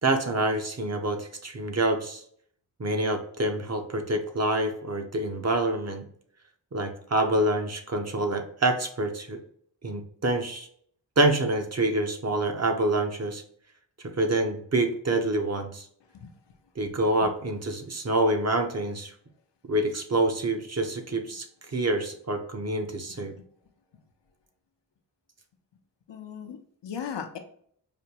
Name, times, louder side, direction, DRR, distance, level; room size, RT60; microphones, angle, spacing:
voice 1, 0.0-2.2 2.8-6.0 6.7-9.4 9.8-10.7 11.2-13.4 14.2-15.8 16.8-19.1 19.7-21.5 21.7-23.3, right 2 dB, 35° right, 5 dB, 0.7 m, -26 dB
voice 2, 26.1-27.4, left 7 dB, 75° left, 6 dB, 0.7 m, -37 dB
5.1 x 2.2 x 2.8 m, 0.63 s
cardioid pair, 55°, 43 cm